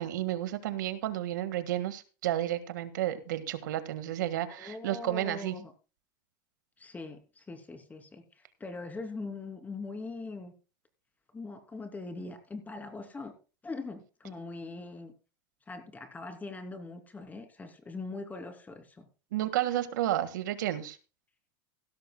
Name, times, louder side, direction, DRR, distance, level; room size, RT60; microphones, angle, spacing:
voice 1, 0.0-5.6 19.3-21.0, right 13 dB, 85° right, 12 dB, 1.7 m, -31 dB
voice 2, 4.5-5.7 6.8-10.5 11.3-13.3 13.6-15.1 15.7-19.1, left 3 dB, 15° left, 6 dB, 2.9 m, -41 dB
16.5 x 13.0 x 2.2 m, 0.34 s
supercardioid pair, 115°, 10 cm